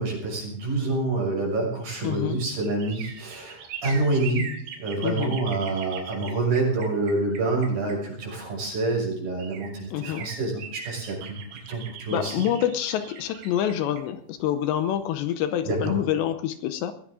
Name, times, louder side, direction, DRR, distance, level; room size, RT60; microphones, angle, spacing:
voice 1, 0.0-4.5 4.8-11.4 11.7-12.4 15.7-15.9, right 2 dB, 50° right, -1 dB, 8.0 m, -27 dB
sound 1, 1.7-8.5 9.1-9.2 9.4-15.2 15.5-15.6, right 6 dB, 75° right, 4.4 m, -41 dB
voice 2, 2.0-2.4 5.0-5.4 9.9-10.3 12.1-16.9, left 11 dB, 75° left, 10 dB, 2.9 m, -27 dB
21.0 x 16.0 x 3.8 m, 0.66 s
omnidirectional pair, 5.3 m